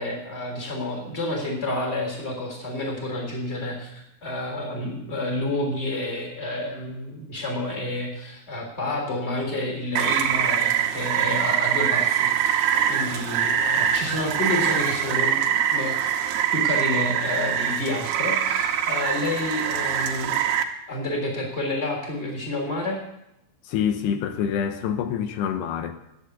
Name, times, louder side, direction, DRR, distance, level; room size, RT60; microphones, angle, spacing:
voice 1, 0.0-3.9 4.2-15.9 16.5-20.3 20.9-23.0, left 1 dB, 15° left, 1 dB, 3.3 m, -29 dB
Rain, 10.0-20.6, right 9 dB, 80° right, 3.0 m, -24 dB
voice 2, 23.6-25.9, left 8 dB, 85° left, 7 dB, 3.1 m, -26 dB
12.0 x 8.8 x 8.6 m, 0.83 s
omnidirectional pair, 4.7 m